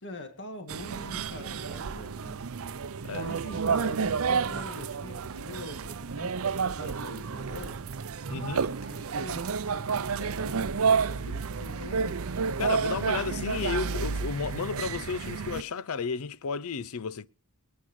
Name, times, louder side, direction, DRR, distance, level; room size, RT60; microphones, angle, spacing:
voice 1, 0.0-2.4 3.2-7.8 8.8-12.2 12.8-12.9, left 2 dB, 55° left, 2.2 m, -44 dB
sound 1, 0.7-15.6, right 5 dB, 65° right, 0.6 m, -30 dB
voice 2, 8.3-8.7 12.6-17.3, left 5 dB, 70° left, 0.5 m, -33 dB
23.5 x 9.6 x 3.1 m
head